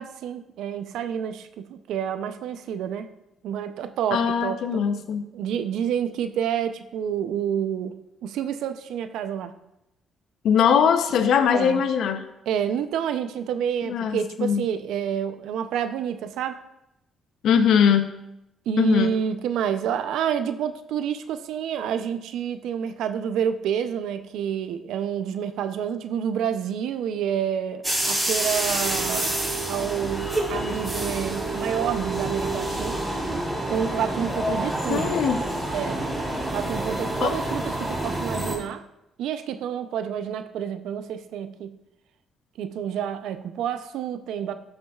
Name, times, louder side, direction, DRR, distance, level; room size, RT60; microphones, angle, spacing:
voice 1, 0.0-3.1 3.4-4.8 5.3-8.0 8.2-9.5 11.5-11.8 12.5-16.6 18.7-29.3 29.7-33.0 33.7-35.2 35.7-36.0 36.5-38.8 39.2-41.7 42.6-44.5, right 8 dB, 85° right, 10 dB, 0.5 m, -28 dB
voice 2, 4.1-5.3 10.4-12.3 13.8-14.7 17.4-18.1 18.8-19.1 34.9-35.4 37.2-37.4, left 7 dB, 75° left, 9 dB, 0.6 m, -21 dB
sound 1, 27.8-38.5, right 1 dB, 10° right, 2.7 m, -28 dB
13.0 x 6.1 x 2.4 m, 0.86 s
cardioid pair, 90°, 0 cm